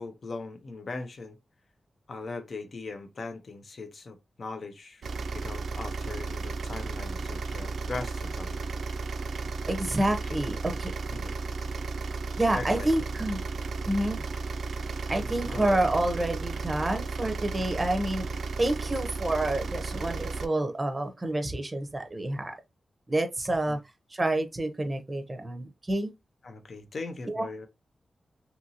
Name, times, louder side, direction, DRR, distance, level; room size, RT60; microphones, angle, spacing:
voice 1, 0.0-1.4 2.1-5.1 5.3-8.6 10.3-10.4 11.1-11.4 12.5-12.9 15.2-15.8 23.7-23.8 26.4-27.7, left 3 dB, 55° left, 0.5 m, -39 dB
sound 1, 5.0-20.5, right 3 dB, 80° right, 0.3 m, -34 dB
voice 2, 9.7-10.9 12.4-13.4 13.8-14.2 15.1-18.3 18.6-22.5 23.1-23.8 24.1-26.1 27.3-27.7, right 1 dB, 20° right, 0.6 m, -28 dB
2.8 x 2.6 x 2.7 m
wide cardioid pair, 95°, 0 cm